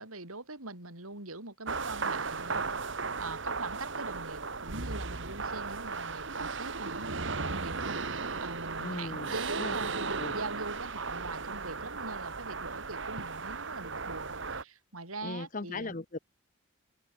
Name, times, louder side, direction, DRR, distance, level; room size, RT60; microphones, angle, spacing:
voice 1, 0.0-2.7 3.2-15.9, right 3 dB, 85° right, 6.7 m, -42 dB
sound 1, 1.7-14.6, right 4 dB, 60° right, 1.8 m, -36 dB
voice 2, 8.8-9.3 9.6-9.7 10.2-10.4 15.2-16.2, left 2 dB, 40° left, 1.0 m, -38 dB
open air
head